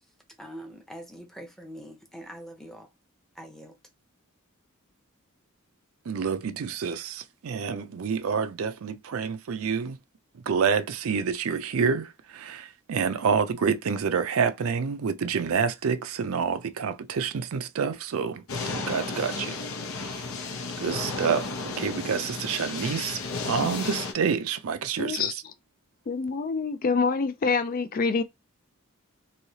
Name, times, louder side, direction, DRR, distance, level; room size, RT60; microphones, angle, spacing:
voice 1, 0.4-2.9 3.3-3.8, equal, ahead, 0.7 m, -43 dB
voice 2, 6.1-10.0 10.5-19.6 20.8-21.5 21.8-25.4, right 6 dB, 75° right, 0.4 m, -28 dB
sound 1, 18.5-24.1, left 4 dB, 75° left, 0.7 m, -33 dB
voice 3, 25.0-25.3 26.1-28.2, left 4 dB, 40° left, 0.4 m, -26 dB
3.1 x 2.7 x 2.7 m
head